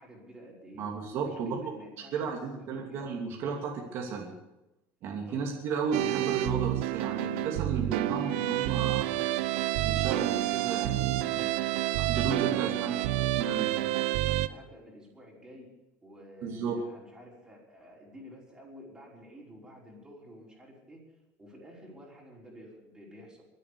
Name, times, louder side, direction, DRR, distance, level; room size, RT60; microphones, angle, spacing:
voice 1, 0.0-0.8 1.2-3.0 5.3-5.5 8.7-9.0 11.3-11.5 12.4-13.3 13.6-15.7 16.0-23.5, equal, 10° right, -4 dB, 5.4 m, -51 dB
voice 2, 0.8-1.6 2.1-4.3 5.0-9.1 9.8-11.3 12.0-12.9 13.4-13.7 16.4-16.8, right 5 dB, 50° right, 0 dB, 2.7 m, -33 dB
sound 1, 5.9-14.5, right 16 dB, 85° right, 0.7 m, -29 dB
23.5 x 8.4 x 6.9 m, 0.95 s
cardioid pair, 150°, 6 cm